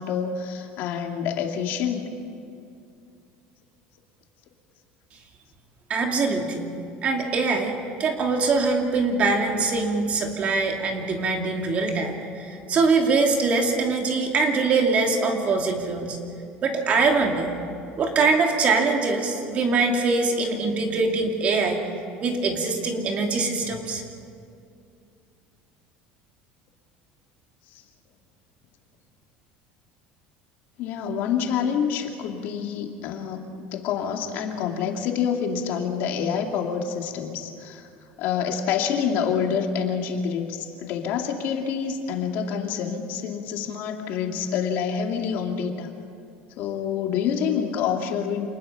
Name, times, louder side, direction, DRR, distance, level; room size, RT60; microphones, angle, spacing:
voice 1, 0.0-2.1 27.7-27.8 30.8-37.9 38.2-45.9 46.6-48.5, left 7 dB, 60° left, 3 dB, 2.4 m, -27 dB
voice 2, 5.9-6.7 7.0-16.2 16.6-17.5 18.0-21.8 22.2-24.0, right 4 dB, 35° right, 2 dB, 2.8 m, -23 dB
27.5 x 20.0 x 5.7 m, 2.4 s
cardioid pair, 140°, 4 cm